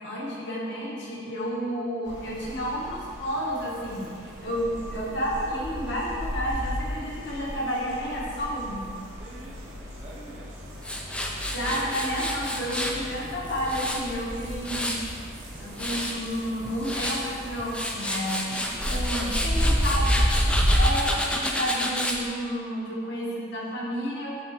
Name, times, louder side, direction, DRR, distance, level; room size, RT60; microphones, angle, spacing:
voice 1, 0.0-8.9 11.5-15.0 15.6-18.6 18.9-20.1 20.7-24.3, equal, 60° left, -5 dB, 1.3 m, -31 dB
sound 1, 2.1-21.0, equal, 85° right, 1.4 m, -31 dB
voice 2, 9.1-10.6 12.7-13.4 16.0-16.3 18.7-20.0 20.4-20.8, right 1 dB, 30° right, -3 dB, 0.7 m, -47 dB
Tools, 10.8-13.0 13.4-15.1 15.5-16.1 16.6-17.2 17.6-22.2, left 1 dB, 5° left, 0.3 m, -30 dB
7.8 x 3.7 x 3.6 m, 2.2 s
head